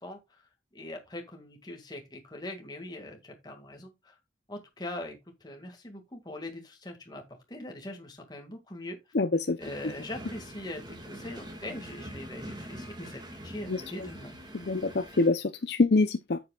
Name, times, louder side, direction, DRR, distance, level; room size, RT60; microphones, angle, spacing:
voice 1, 0.0-0.5 0.7-4.1 4.5-7.2 7.5-9.0 9.6-14.4, left 1 dB, 20° left, 1.9 m, -42 dB
voice 2, 9.1-9.6 13.7-14.1 14.5-16.4, left 3 dB, 55° left, 0.6 m, -26 dB
sound 1, 9.6-15.3, equal, 20° right, 2.0 m, -44 dB
11.0 x 7.8 x 2.3 m
head